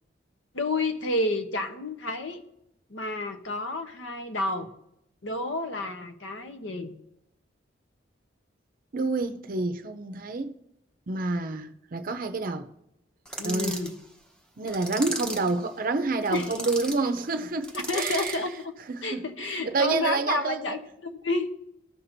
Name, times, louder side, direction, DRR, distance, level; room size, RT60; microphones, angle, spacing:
voice 1, 0.5-2.4 2.9-4.7 5.2-7.0 13.4-13.9 16.3-16.5 17.7-18.7 19.0-20.8 21.2-21.5, left 2 dB, 90° left, 0.9 m, -30 dB
voice 2, 8.9-10.5 11.1-12.7 13.4-13.8 14.6-18.4 18.9-20.8, right 3 dB, 50° right, 0.5 m, -28 dB
sound 1, 13.3-13.9 14.7-15.5 16.2-17.0 17.6-18.5, right 1 dB, 5° left, 0.9 m, -35 dB
14.5 x 5.9 x 2.6 m
head